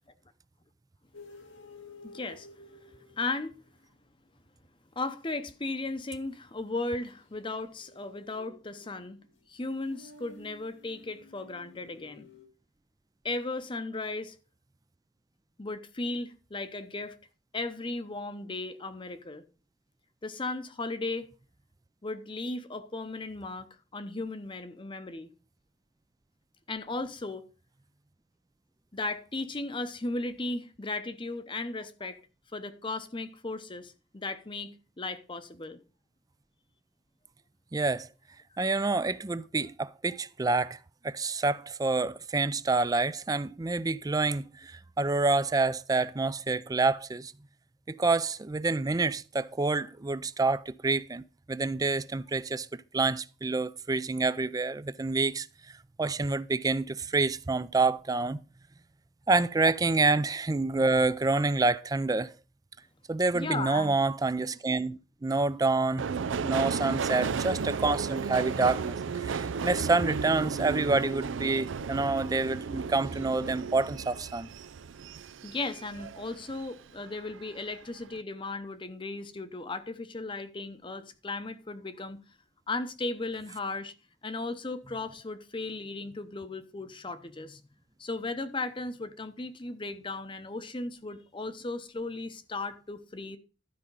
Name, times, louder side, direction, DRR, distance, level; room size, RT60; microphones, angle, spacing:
sound 1, 1.1-3.8 7.3-12.5, left 2 dB, 90° left, 2.1 m, -53 dB
voice 1, 2.0-2.5 3.1-3.5 5.0-9.2 9.5-12.3 13.2-14.4 15.6-17.1 17.5-19.4 20.2-21.3 22.0-25.3 26.7-27.5 28.9-32.2 32.5-35.8 59.6-59.7 63.3-64.0 75.4-82.2 82.7-83.9 84.2-87.6 88.0-93.4, left 2 dB, 25° left, 0.7 m, -36 dB
voice 2, 37.7-38.1 38.6-40.8 41.0-47.3 47.9-55.5 56.0-58.4 59.3-62.3 63.1-66.1 66.4-74.5, right 3 dB, 20° right, 0.4 m, -27 dB
Subway metro underground, 66.0-76.7 77.1-77.8 78.1-78.2, right 5 dB, 85° right, 0.5 m, -34 dB
12.5 x 5.0 x 5.4 m
head